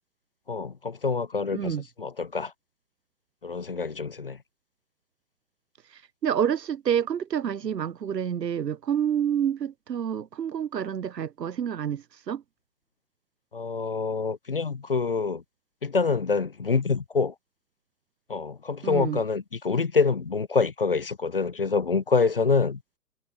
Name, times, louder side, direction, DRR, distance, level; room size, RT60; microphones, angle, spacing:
voice 1, 0.5-2.5 3.4-4.4 13.5-15.4 15.8-17.3 18.3-22.8, left 4 dB, 35° left, 0.6 m, -26 dB
voice 2, 1.5-1.8 6.2-12.4 18.8-19.2, right 9 dB, 80° right, 0.6 m, -28 dB
figure-of-eight pair, 140°, 48 cm